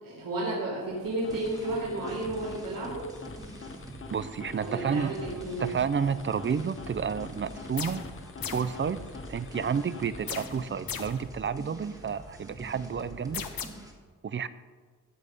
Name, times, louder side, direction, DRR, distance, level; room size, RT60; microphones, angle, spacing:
voice 1, 0.0-3.0 4.6-5.7, right 2 dB, 60° right, -7 dB, 3.1 m, -32 dB
sound 1, 0.9-10.8, left 4 dB, 35° left, 0.8 m, -46 dB
sound 2, 1.2-13.9, right 1 dB, 10° right, 1.5 m, -46 dB
voice 2, 4.1-5.2 5.6-8.0 8.5-9.0 9.3-13.4 14.2-14.5, right 6 dB, 35° right, 15 dB, 0.5 m, -30 dB
sound 3, 7.8-8.1 8.4-8.8 10.3-11.3 13.3-13.7, left 8 dB, 70° left, 1.0 m, -37 dB
14.5 x 8.7 x 5.2 m, 1.5 s
wide cardioid pair, 175°, 36 cm